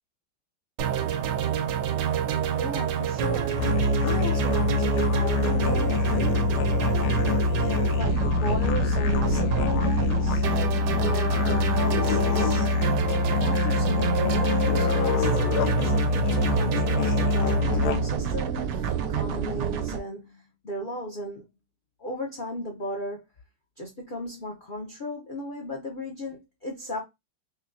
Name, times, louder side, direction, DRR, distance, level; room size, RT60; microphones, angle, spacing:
sound 1, 0.8-20.0, right 8 dB, 75° right, 1.0 m, -28 dB
voice 1, 2.5-6.5 7.6-10.4 10.9-12.7 13.3-15.3 15.7-21.5 22.0-23.2 23.8-27.0, left 1 dB, 60° left, 0.5 m, -35 dB
Musical instrument, 3.5-18.3, left 4 dB, 75° left, 0.9 m, -25 dB
5.6 x 2.2 x 2.6 m
omnidirectional pair, 2.2 m